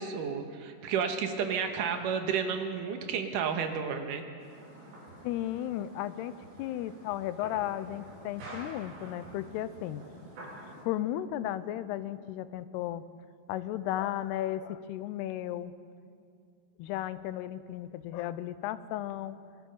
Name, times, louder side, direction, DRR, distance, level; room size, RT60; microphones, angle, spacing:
voice 1, 0.0-4.2, right 6 dB, 65° right, 6 dB, 2.6 m, -31 dB
sound 1, 4.4-10.8, right 1 dB, 85° right, 6.5 m, -48 dB
voice 2, 5.2-10.0 10.4-10.6 10.8-13.1 13.5-15.7 16.8-19.4, left 13 dB, 85° left, 14 dB, 2.8 m, -35 dB
26.0 x 19.5 x 5.5 m, 2.3 s
omnidirectional pair, 4.7 m